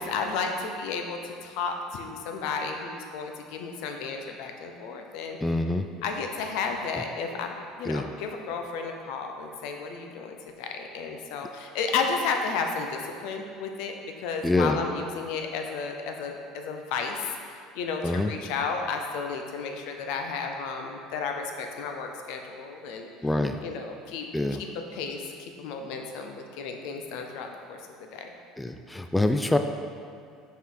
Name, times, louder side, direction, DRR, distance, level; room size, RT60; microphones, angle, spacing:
voice 1, 0.0-5.4 6.0-23.1 23.6-24.3 24.6-28.3, left 5 dB, 70° left, 4 dB, 0.6 m, -33 dB
voice 2, 5.4-5.9 7.9-8.1 14.4-14.8 18.0-18.3 23.2-23.6 24.3-24.6 28.6-29.6, left 2 dB, 10° left, 7 dB, 0.3 m, -25 dB
5.7 x 4.5 x 3.8 m, 2.3 s
hypercardioid pair, 80°, 0 cm